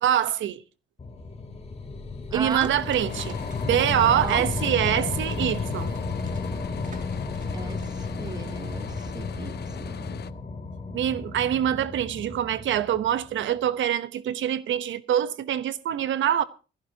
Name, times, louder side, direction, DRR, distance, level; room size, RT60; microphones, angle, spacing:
voice 1, 0.0-0.6 2.3-3.3 3.6-5.9 10.9-16.4, right 10 dB, 75° right, 1.1 m, -25 dB
sound 1, 1.0-13.5, left 4 dB, 30° left, 3.1 m, -33 dB
voice 2, 2.3-2.7 4.2-4.5 7.5-7.8 8.2-10.0, right 4 dB, 20° right, 0.7 m, -35 dB
sound 2, 2.5-9.4, right 4 dB, 40° right, 2.5 m, -48 dB
sound 3, 3.1-10.3, left 10 dB, 55° left, 0.8 m, -41 dB
20.5 x 15.5 x 2.9 m
cardioid pair, 90°, 20 cm